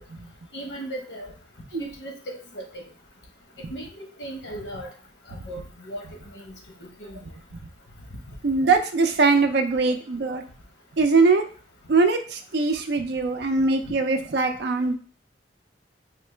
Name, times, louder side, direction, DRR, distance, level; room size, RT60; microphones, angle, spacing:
voice 1, 0.5-1.3 1.8-2.8 3.7-4.9 5.4-6.0 6.3-6.5 6.8-7.2, right 1 dB, 80° left, 2 dB, 0.9 m, -37 dB
voice 2, 8.4-10.4 11.0-11.4 11.9-14.9, right 3 dB, 65° right, 6 dB, 0.4 m, -21 dB
4.4 x 2.1 x 3.2 m, 0.39 s
head